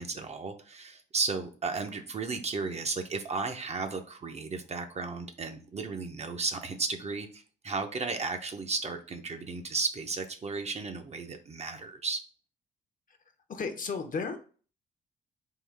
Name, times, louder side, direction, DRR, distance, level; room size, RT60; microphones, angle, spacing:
voice 1, 0.0-12.2, right 4 dB, 35° right, 6 dB, 0.5 m, -34 dB
voice 2, 13.5-14.4, left 5 dB, 45° left, 7 dB, 0.7 m, -34 dB
3.7 x 2.3 x 3.3 m, 0.39 s
cardioid pair, 90°, 20 cm